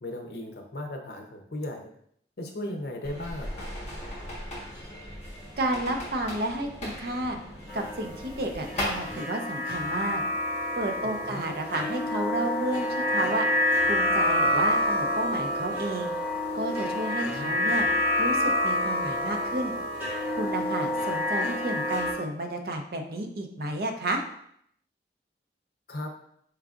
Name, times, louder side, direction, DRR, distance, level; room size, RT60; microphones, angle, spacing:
voice 1, 0.0-1.9 2.4-3.7 11.0-11.4 17.1-17.6 25.9-26.1, left 1 dB, 60° left, 3 dB, 0.7 m, -37 dB
sound 1, 3.0-9.2, left 1 dB, 40° left, 1.2 m, -38 dB
voice 2, 5.6-7.4 7.7-10.2 10.7-13.5 13.8-16.1 16.5-17.9 18.2-19.7 20.3-24.2, right 1 dB, 55° right, 4 dB, 0.5 m, -31 dB
sound 2, 7.7-22.1, left 1 dB, 10° right, 1.3 m, -28 dB
4.5 x 3.7 x 2.4 m, 0.69 s
head